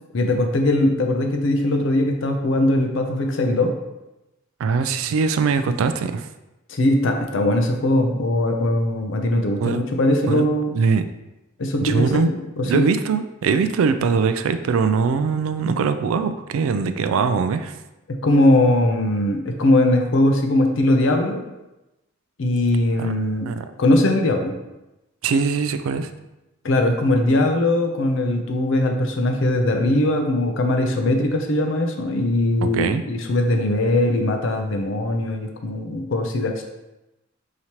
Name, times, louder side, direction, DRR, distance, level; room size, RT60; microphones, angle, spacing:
voice 1, 0.1-3.7 6.7-10.8 11.6-12.9 18.2-21.4 22.4-23.5 23.8-24.5 26.6-36.6, left 1 dB, 65° left, 4 dB, 0.5 m, -20 dB
voice 2, 4.6-6.3 9.6-9.8 10.3-10.5 10.7-11.1 11.8-12.3 12.6-17.8 23.0-23.1 23.4-23.7 25.2-26.1 32.6-33.0, right 5 dB, 80° right, 10 dB, 0.3 m, -21 dB
4.9 x 2.8 x 2.9 m, 0.98 s
head